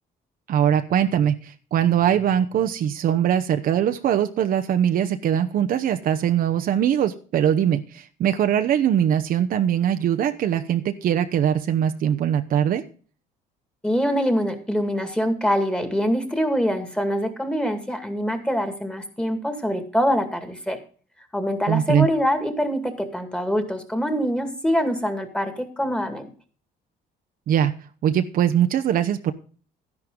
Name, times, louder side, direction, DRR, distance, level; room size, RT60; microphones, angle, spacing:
voice 1, 0.5-12.8 21.7-22.1 27.5-27.7 28.0-29.3, right 9 dB, 60° right, 7 dB, 0.9 m, -21 dB
voice 2, 13.8-20.8 21.3-26.3, equal, 5° left, 8 dB, 2.1 m, -24 dB
12.0 x 11.0 x 3.8 m, 0.40 s
cardioid pair, 110°, 17 cm